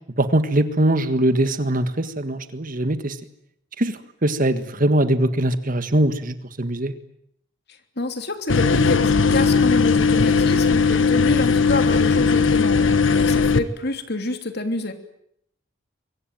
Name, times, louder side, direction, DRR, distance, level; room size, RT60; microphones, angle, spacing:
voice 1, 0.2-3.2 3.8-6.9, right 1 dB, 45° right, 11 dB, 1.7 m, -21 dB
voice 2, 8.0-14.9, left 2 dB, 55° left, 7 dB, 3.1 m, -27 dB
sound 1, 8.5-13.6, left 4 dB, 75° left, 1.4 m, -18 dB
24.5 x 23.5 x 9.2 m, 0.74 s
head